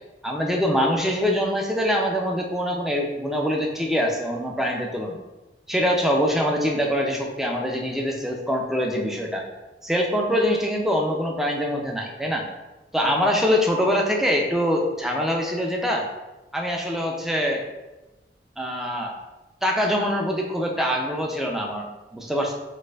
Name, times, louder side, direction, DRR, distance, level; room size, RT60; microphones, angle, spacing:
voice 1, 0.2-5.2 5.7-9.5 9.8-12.4 12.9-16.1 16.5-17.6 18.6-19.1 19.6-22.5, equal, ahead, 0 dB, 0.3 m, -24 dB
4.1 x 2.5 x 2.3 m, 1.1 s
head